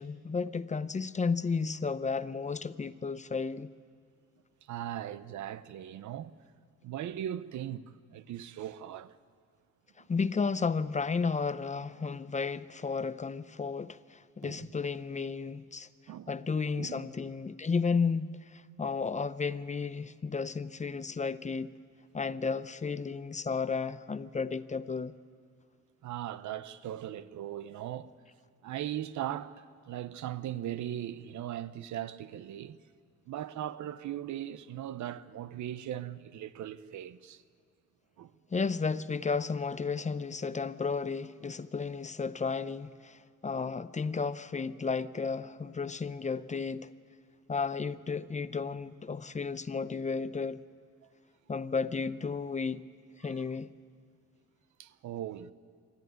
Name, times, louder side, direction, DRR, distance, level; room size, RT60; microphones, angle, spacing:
voice 1, 0.0-3.7 10.1-15.9 16.3-21.7 22.1-25.2 38.5-46.9 47.5-50.6 51.5-52.8 53.2-53.7, left 5 dB, 25° left, 0.6 m, -33 dB
voice 2, 4.7-6.3 6.8-9.1 14.4-14.6 16.1-16.3 16.8-17.0 26.0-28.1 28.6-29.5 29.9-32.8 33.3-37.4 38.2-38.3 53.2-53.3 54.8-55.5, right 11 dB, 70° right, 0.8 m, -39 dB
25.0 x 13.5 x 9.4 m
cardioid pair, 90°, 30 cm